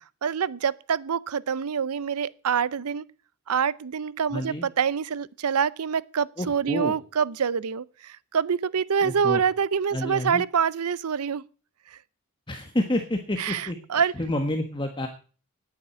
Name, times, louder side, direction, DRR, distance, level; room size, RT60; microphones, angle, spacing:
voice 1, 0.2-3.0 3.5-11.5 11.9-12.0 13.4-14.1, right 7 dB, 90° right, 0.6 m, -26 dB
voice 2, 4.3-4.7 6.4-6.9 9.0-9.4 9.9-10.4 12.5-15.1, left 1 dB, 20° left, 1.4 m, -29 dB
10.0 x 9.2 x 8.2 m
head